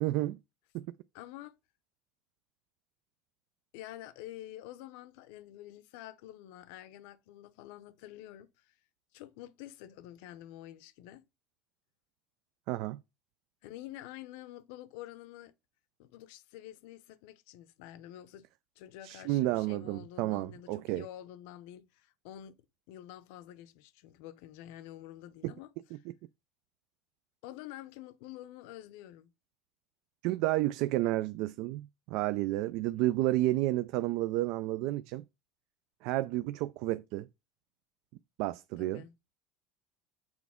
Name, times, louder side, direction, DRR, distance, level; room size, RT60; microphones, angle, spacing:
voice 1, 0.0-0.4 0.7-0.9 12.7-13.0 19.0-21.1 25.4-25.5 30.2-35.2 36.0-37.3 38.4-39.0, right 16 dB, 65° right, 0.3 m, -31 dB
voice 2, 1.1-1.6 3.7-8.7 9.1-11.2 13.6-15.5 16.0-18.5 18.8-25.7 27.4-29.3 38.8-39.1, left 13 dB, 75° left, 0.6 m, -48 dB
6.2 x 4.5 x 3.6 m
supercardioid pair, 135°, 0 cm